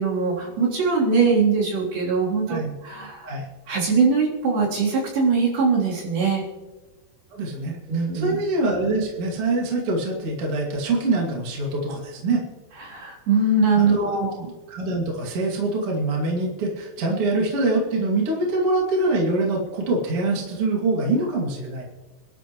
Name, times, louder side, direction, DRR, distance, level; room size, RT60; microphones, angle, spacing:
voice 1, 0.0-3.3 3.7-6.5 7.6-8.4 12.9-14.5, right 4 dB, 60° right, -4 dB, 5.2 m, -22 dB
voice 2, 7.3-12.4 13.7-14.2 14.7-21.8, right 2 dB, 40° right, -2 dB, 2.6 m, -24 dB
28.0 x 12.0 x 3.1 m, 1.3 s
omnidirectional pair, 5.1 m